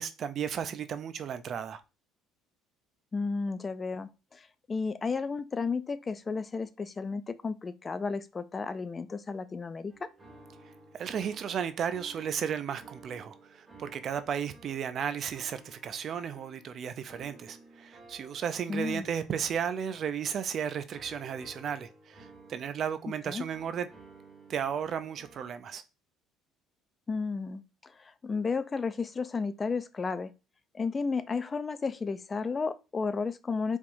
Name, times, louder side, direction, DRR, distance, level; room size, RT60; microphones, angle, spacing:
voice 1, 0.0-1.8 10.9-23.9 24.5-25.8, right 8 dB, 50° right, 0.4 m, -34 dB
voice 2, 3.1-10.1 18.7-19.1 23.3-23.4 27.1-30.3 30.7-33.8, left 4 dB, 25° left, 0.4 m, -33 dB
sound 1, 9.9-25.5, right 2 dB, 15° right, 1.6 m, -55 dB
4.6 x 3.6 x 2.6 m
cardioid pair, 105°, 0 cm